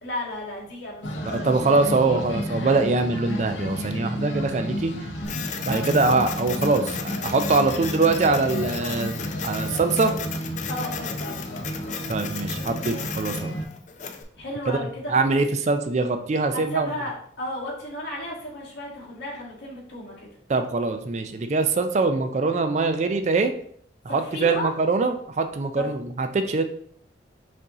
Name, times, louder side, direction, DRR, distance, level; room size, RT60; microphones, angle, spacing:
voice 1, 0.0-2.3 5.7-5.9 10.7-11.4 14.4-15.3 16.5-20.3 24.1-24.7 25.8-25.9, left 1 dB, 70° left, -5 dB, 1.8 m, -34 dB
sound 1, 1.0-13.6, equal, 90° left, 0.7 m, -32 dB
voice 2, 1.4-4.9 5.6-10.1 12.1-13.5 14.7-14.8 15.1-16.9 20.5-23.5 24.1-26.6, right 3 dB, 40° right, 8 dB, 0.3 m, -23 dB
Printer, 5.2-14.2, left 6 dB, 40° left, 0.4 m, -36 dB
5.3 x 2.7 x 3.6 m, 0.62 s
head